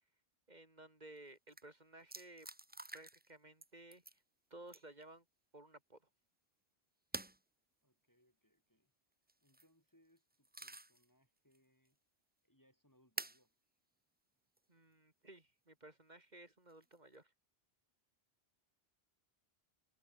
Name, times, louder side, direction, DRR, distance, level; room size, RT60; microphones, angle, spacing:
voice 1, 0.5-2.5 2.9-4.2 4.5-5.3 5.5-6.0 14.7-17.3, right 2 dB, 40° right, 3.6 m, -57 dB
sound 1, 1.2-1.3 1.5-1.6 2.1-3.3 3.6-4.2 4.7-5.0 7.1-7.4 9.3-9.7 10.2-11.0 11.5-11.6 13.2-13.4 14.6-14.7 16.7-17.2, right 2 dB, 10° right, 0.6 m, -48 dB
voice 2, 7.8-8.9 9.4-12.0 12.4-13.5, equal, 15° left, 4.9 m, -74 dB
omnidirectional pair, 1.1 m